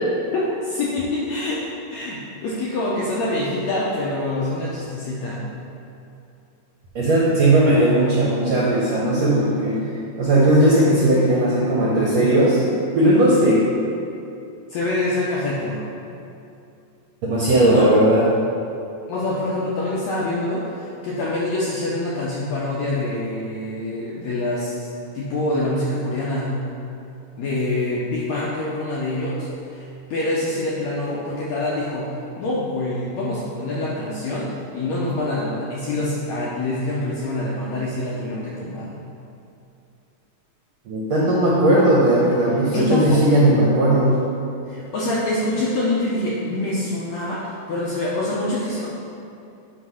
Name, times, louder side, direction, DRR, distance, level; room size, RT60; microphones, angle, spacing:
voice 1, 0.6-1.6 1.9-5.4 14.7-15.8 17.7-17.9 19.1-26.5 27.4-39.0 42.7-43.5 44.6-48.9, left 2 dB, 75° left, -6 dB, 1.6 m, -25 dB
voice 2, 6.9-9.9 10.2-12.6 12.9-13.7 17.2-18.2 40.9-44.2, right 1 dB, 70° right, -6 dB, 1.5 m, -17 dB
9.4 x 3.2 x 5.5 m, 2.6 s
omnidirectional pair, 4.0 m